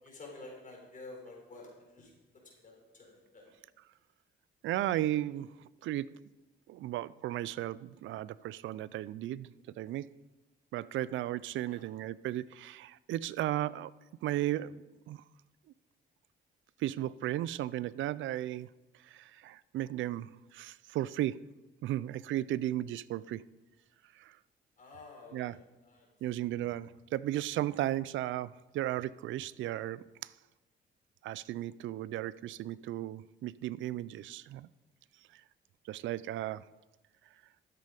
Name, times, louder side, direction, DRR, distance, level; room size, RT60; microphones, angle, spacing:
voice 1, 0.0-2.1 2.4-3.5 11.7-11.9 24.8-26.1, left 2 dB, 40° left, 4.2 m, -50 dB
voice 2, 4.6-6.1 6.7-10.1 10.7-13.9 14.2-15.2 16.8-18.7 19.0-21.4 21.8-23.4 24.2-24.4 25.3-25.6 26.2-30.3 31.2-34.7 35.9-36.7, right 14 dB, 75° right, 0.4 m, -35 dB
12.5 x 7.6 x 5.1 m
cardioid pair, 90°, 20 cm